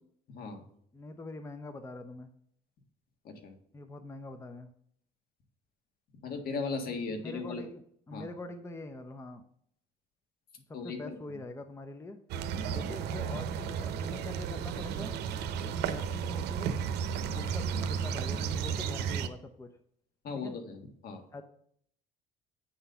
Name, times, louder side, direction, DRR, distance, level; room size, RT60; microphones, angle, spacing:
voice 1, 0.3-0.6 3.2-3.5 6.2-7.6 8.1-8.3 10.7-11.0 11.3-11.4 12.7-12.8 17.3-17.5 20.2-21.2, left 4 dB, 65° left, 5 dB, 1.6 m, -37 dB
voice 2, 0.9-2.3 3.7-4.7 7.1-9.4 10.8-12.2 12.7-15.1 15.6-16.8 17.3-19.7 20.4-20.5 21.3-21.4, left 2 dB, 15° left, 8 dB, 0.6 m, -44 dB
sound 1, 12.3-19.3, right 7 dB, 80° right, 0.7 m, -33 dB
8.6 x 4.0 x 5.5 m, 0.66 s
cardioid pair, 110°, 17 cm